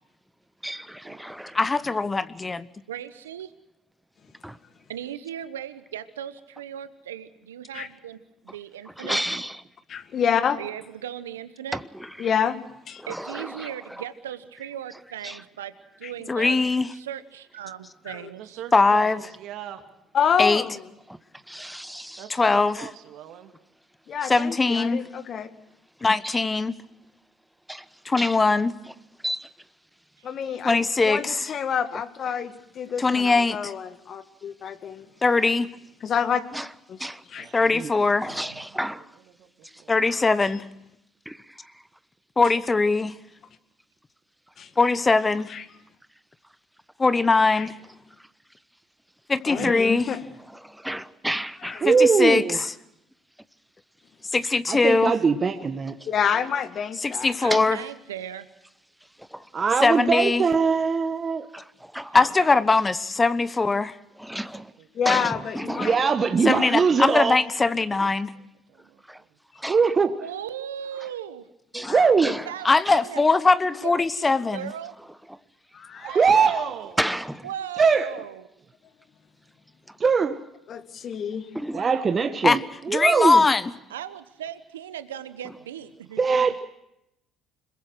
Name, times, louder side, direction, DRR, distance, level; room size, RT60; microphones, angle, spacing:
voice 1, 0.6-1.6 4.4-4.6 8.5-8.6 8.8-9.6 11.7-12.3 13.0-14.0 15.2-15.4 21.1-22.4 24.2-24.4 26.2-26.4 27.7-28.4 28.9-29.0 29.2-29.5 36.5-36.7 37.0-37.5 38.2-39.1 39.6-39.8 40.1-40.2 41.2-41.8 48.2-48.3 50.5-51.9 57.5-57.7 59.2-59.5 61.5-61.6 61.9-62.5 64.2-64.7 65.0-66.1 69.1-69.2 69.6-69.9 71.7-72.5 72.8-73.0 75.3-75.4 77.0-77.4 79.9-80.0 81.5-81.9, equal, 5° right, 1.0 m, -33 dB
voice 2, 1.5-2.7 16.3-16.9 18.7-19.2 20.4-20.6 22.3-22.9 24.3-25.0 26.0-26.7 28.0-28.7 30.6-31.5 33.0-33.7 35.2-35.7 37.5-38.3 39.9-40.6 42.4-43.1 44.8-45.5 47.0-47.7 49.3-50.1 51.9-52.7 54.3-55.1 57.0-57.8 59.8-60.4 62.1-64.0 66.4-68.3 72.6-74.7 82.4-82.6 82.9-83.7, left 3 dB, 25° left, 1.1 m, -21 dB
voice 3, 2.9-3.5 4.9-9.2 10.6-11.8 13.1-15.7 16.0-16.6 16.9-18.6 30.2-30.6 38.4-38.6 55.0-55.1 57.4-58.5 70.2-71.5 72.2-73.2 73.8-74.9 77.4-78.5 83.9-86.2, right 10 dB, 90° right, 0.9 m, -37 dB
voice 4, 9.9-10.6 12.2-12.6 12.9-13.0 16.0-16.1 18.1-18.3 20.1-20.8 24.1-25.5 30.2-35.1 36.0-36.4 36.9-37.0 37.3-37.5 44.6-44.7 45.5-45.6 47.5-47.7 49.4-50.2 51.6-51.8 56.0-57.7 64.9-66.0 66.6-66.7 71.8-72.1 75.7-76.1 80.7-81.5, left 7 dB, 50° left, 2.0 m, -28 dB
voice 5, 18.4-19.8 22.2-22.4 22.8-23.5 37.4-37.6 39.4-39.5 39.8-40.0 64.8-64.9 68.3-68.4 68.7-69.0 76.0-77.0 81.6-82.3, right 11 dB, 65° right, 2.6 m, -38 dB
voice 6, 51.8-52.6 54.7-55.9 59.5-61.4 65.8-67.4 69.7-70.2 71.7-72.4 76.1-76.7 77.8-78.1 80.0-80.4 81.7-82.6 82.9-83.4 86.2-86.6, right 5 dB, 35° right, 1.5 m, -21 dB
26.5 x 22.0 x 6.2 m
hypercardioid pair, 60°, 0 cm